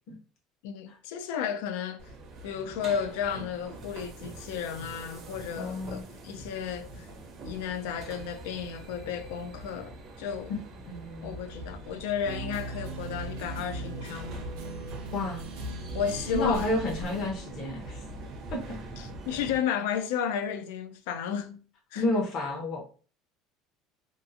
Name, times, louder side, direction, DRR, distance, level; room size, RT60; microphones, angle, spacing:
voice 1, 0.6-2.1 2.4-7.1 7.4-10.5 11.2-14.4 15.9-16.7 19.3-21.6 21.9-22.0, left 8 dB, 90° left, 0.4 m, -33 dB
sound 1, 2.0-19.6, right 1 dB, 40° right, 0.6 m, -43 dB
voice 2, 5.6-6.0 10.5-11.3 15.1-15.4 16.3-18.0 18.5-18.8 21.9-22.8, left 2 dB, 45° left, 0.7 m, -31 dB
sound 2, 12.2-17.3, right 2 dB, 85° right, 0.6 m, -39 dB
2.6 x 2.4 x 2.6 m
cardioid pair, 155°, 0 cm